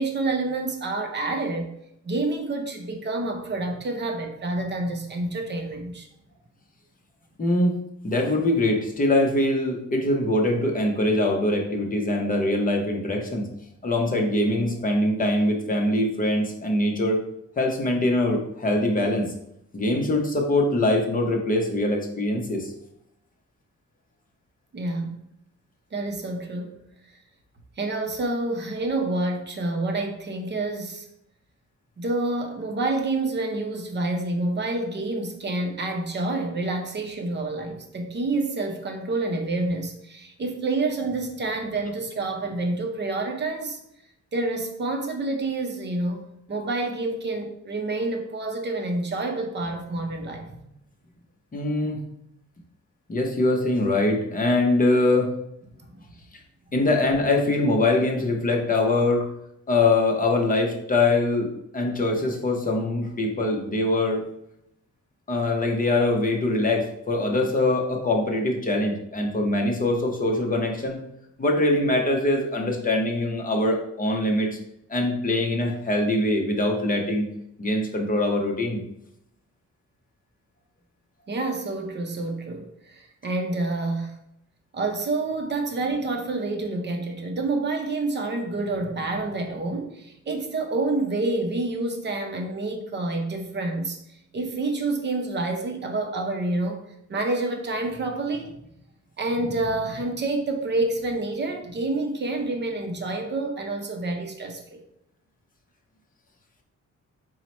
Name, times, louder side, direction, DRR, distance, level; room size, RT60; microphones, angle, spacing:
voice 1, 0.0-1.7 2.0-6.1 24.7-25.2 25.9-26.8 27.8-31.1 32.0-43.8 44.3-50.6 81.3-84.2 84.7-94.0 94.3-96.8 97.1-98.5 99.2-104.8, right 2 dB, 35° right, 4 dB, 0.6 m, -28 dB
voice 2, 7.4-7.8 8.0-13.5 13.8-17.2 17.6-19.3 19.7-22.7 51.5-52.0 53.1-55.3 56.7-59.3 59.7-64.2 65.3-71.0 71.4-74.6 74.9-77.3 77.6-78.8, left 2 dB, 25° left, 1 dB, 0.6 m, -23 dB
4.4 x 2.1 x 4.1 m, 0.78 s
wide cardioid pair, 165°, 31 cm